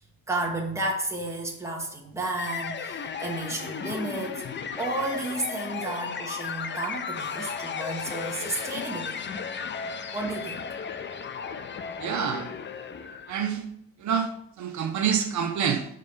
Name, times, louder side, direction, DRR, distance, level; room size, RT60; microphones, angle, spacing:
voice 1, 0.3-9.3 10.1-10.6, right 2 dB, 10° right, -2 dB, 1.9 m, -32 dB
sound 1, 2.4-13.5, left 6 dB, 35° left, 0.6 m, -35 dB
voice 2, 12.0-12.5 13.3-13.6 14.0-14.3 14.6-15.9, right 7 dB, 65° right, 6 dB, 0.8 m, -27 dB
6.6 x 5.3 x 5.4 m, 0.73 s
cardioid pair, 120°, 31 cm